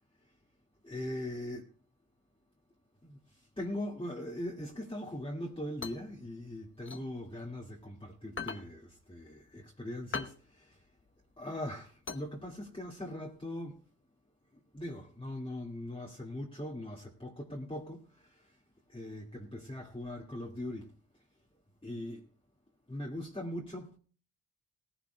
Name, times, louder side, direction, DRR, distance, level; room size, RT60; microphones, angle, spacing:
voice 1, 0.8-1.7 3.0-3.2 3.6-10.8 11.4-13.8 14.7-18.4 18.9-20.9 21.8-22.2 22.9-24.0, left 1 dB, 15° left, 2.1 m, -40 dB
sound 1, 5.5-7.9 8.2-12.9, left 5 dB, 30° left, 1.1 m, -43 dB
17.5 x 15.5 x 2.3 m
supercardioid pair, 45°, 41 cm